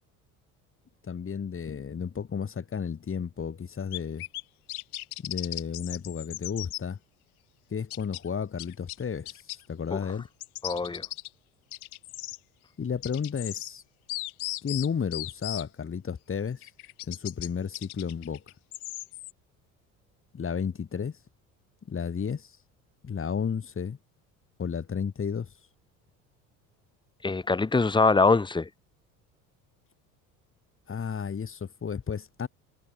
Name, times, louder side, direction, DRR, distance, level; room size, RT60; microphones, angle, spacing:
voice 1, 1.0-4.2 5.2-7.0 7.7-9.4 9.7-10.3 12.8-13.8 14.6-16.6 17.1-18.4 20.3-21.2 21.9-22.5 23.0-24.0 24.6-25.5 30.9-32.5, left 6 dB, 30° left, 2.3 m, -32 dB
sound 1, 3.9-4.4 4.7-6.8 7.9-8.2 8.6-9.6 10.4-11.3 11.7-12.4 13.0-13.7 14.1-15.6 16.6-17.5 17.7-19.3, left 17 dB, 80° left, 2.0 m, -37 dB
voice 2, 10.6-11.0 27.2-28.7, left 3 dB, 10° left, 1.0 m, -23 dB
hypercardioid pair, 65°, 43 cm